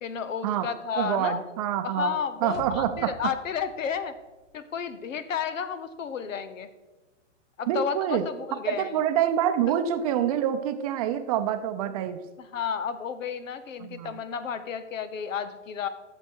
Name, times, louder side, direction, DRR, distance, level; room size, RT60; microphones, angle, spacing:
voice 1, 0.0-1.4 1.8-4.1 4.5-6.7 7.6-9.0 12.4-15.9, left 7 dB, 85° left, 12 dB, 1.1 m, -32 dB
voice 2, 1.0-3.1 7.7-8.2 8.7-12.2 13.8-14.2, right 10 dB, 30° right, 8 dB, 0.6 m, -26 dB
sound 1, 2.4-4.5, left 4 dB, 65° left, 1.5 m, -46 dB
13.0 x 6.8 x 4.6 m, 1.2 s
hypercardioid pair, 150°, 38 cm